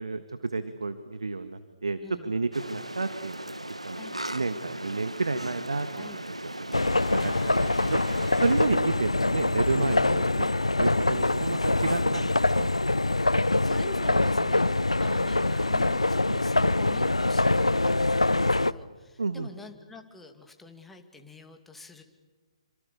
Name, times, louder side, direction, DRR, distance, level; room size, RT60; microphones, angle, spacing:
voice 1, 0.0-6.1 6.4-6.5 6.9-8.0 8.4-10.5 10.8-12.7 19.2-19.5, right 3 dB, 75° right, 10 dB, 1.6 m, -31 dB
voice 2, 2.0-2.4 4.0-4.2 5.9-6.2 8.4-8.6 13.2-22.0, left 3 dB, 5° left, 4 dB, 2.4 m, -47 dB
sound 1, 2.5-8.7, right 1 dB, 90° right, 1.2 m, -38 dB
sound 2, 6.7-18.7, left 2 dB, 85° left, 0.7 m, -24 dB
Piano, 9.7-16.9, left 6 dB, 55° left, 1.8 m, -46 dB
28.0 x 26.0 x 6.9 m, 1.3 s
figure-of-eight pair, 130°, 3 cm